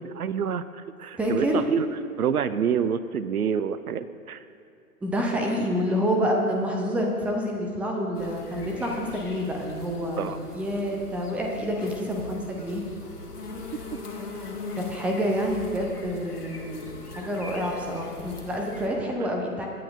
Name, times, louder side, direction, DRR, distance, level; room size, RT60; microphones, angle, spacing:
voice 1, 0.0-1.9 2.2-4.4 10.2-10.4 19.2-19.3, right 7 dB, 75° right, 14 dB, 0.6 m, -27 dB
voice 2, 1.2-1.6 5.0-12.8 14.9-16.9 17.2-19.7, equal, 5° right, 1 dB, 0.7 m, -28 dB
sound 1, 8.1-18.9, left 3 dB, 85° left, 1.7 m, -40 dB
22.5 x 9.4 x 2.6 m, 2.5 s
figure-of-eight pair, 115°, 45 cm